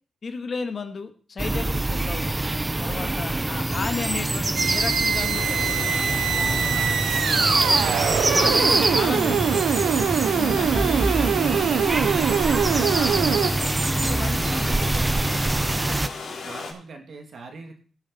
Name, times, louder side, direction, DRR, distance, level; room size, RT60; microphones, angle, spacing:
voice 1, 0.2-2.2 2.8-5.9 6.3-6.8 8.3-12.2 12.7-13.4 14.0-14.7, left 4 dB, 50° left, 7 dB, 1.6 m, -34 dB
sound 1, 1.4-16.1, right 2 dB, 20° right, 0.6 m, -24 dB
voice 2, 2.9-3.2 6.4-8.2 14.4-16.1 16.4-17.8, right 4 dB, 65° right, 3 dB, 2.7 m, -41 dB
sound 2, 4.6-13.5, right 8 dB, 85° right, 0.6 m, -24 dB
sound 3, 5.3-16.7, left 4 dB, 75° left, 4.3 m, -35 dB
17.5 x 7.5 x 4.2 m, 0.40 s
cardioid pair, 80°, 0 cm